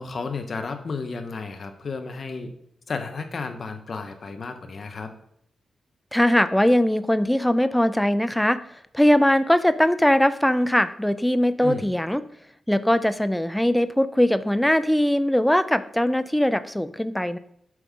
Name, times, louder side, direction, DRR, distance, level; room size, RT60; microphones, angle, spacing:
voice 1, 0.0-2.5 2.9-5.1 11.6-11.8, left 4 dB, 55° left, 7 dB, 1.0 m, -32 dB
voice 2, 6.1-8.6 8.9-12.2 12.7-17.4, left 1 dB, 5° left, 12 dB, 0.5 m, -21 dB
7.8 x 5.5 x 3.7 m, 0.71 s
cardioid pair, 70°, 0 cm